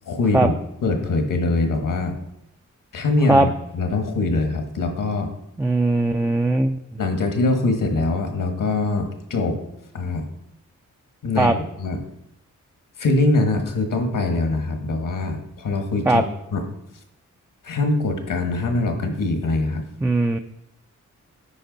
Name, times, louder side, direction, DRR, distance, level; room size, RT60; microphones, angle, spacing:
voice 1, 0.0-0.6 0.8-2.1 2.9-5.3 7.0-9.6 9.9-10.3 11.2-12.0 13.0-16.2 16.5-16.6 17.6-19.8, left 2 dB, 75° left, 5 dB, 1.5 m, -23 dB
voice 2, 5.6-6.8 11.4-11.6 16.1-16.2 20.0-20.4, right 2 dB, 10° right, 6 dB, 0.4 m, -19 dB
9.9 x 5.1 x 4.0 m, 0.82 s
cardioid pair, 70°, 32 cm